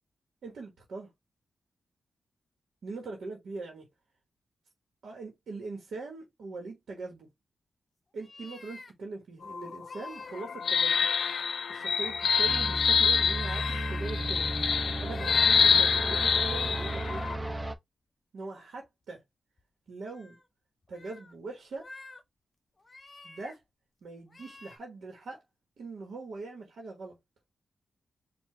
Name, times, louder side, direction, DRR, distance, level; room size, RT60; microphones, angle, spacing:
voice 1, 0.4-1.1 2.8-3.9 5.0-7.3 8.1-11.1 11.7-14.5 15.0-17.2 18.3-19.2 19.9-20.4 20.9-21.9 23.2-23.6 24.0-25.4 25.8-27.2, right 3 dB, 80° right, 1.3 m, -41 dB
sound 1, 8.2-8.9 9.8-10.4 10.8-11.4 11.9-12.9 13.4-14.6 15.1-15.8 16.3-17.0 17.5-17.6 19.6-19.7 20.1-20.5 20.8-21.3 21.7-22.2 22.8-23.6 24.3-24.8, left 3 dB, 30° left, 1.0 m, -49 dB
sound 2, 9.4-17.3, left 6 dB, 70° left, 0.3 m, -27 dB
sound 3, 12.0-17.8, right 1 dB, 20° right, 0.7 m, -35 dB
4.7 x 2.5 x 3.3 m
cardioid pair, 70°, 0 cm